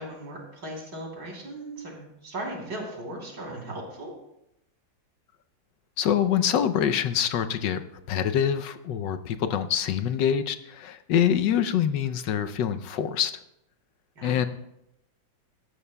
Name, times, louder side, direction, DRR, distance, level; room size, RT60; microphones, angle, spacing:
voice 1, 0.0-4.1 14.2-14.4, right 1 dB, 75° right, -2 dB, 4.1 m, -37 dB
voice 2, 6.0-7.8 8.1-13.3 14.2-14.5, left 9 dB, 75° left, 11 dB, 1.2 m, -25 dB
17.5 x 14.0 x 2.3 m, 0.83 s
omnidirectional pair, 2.1 m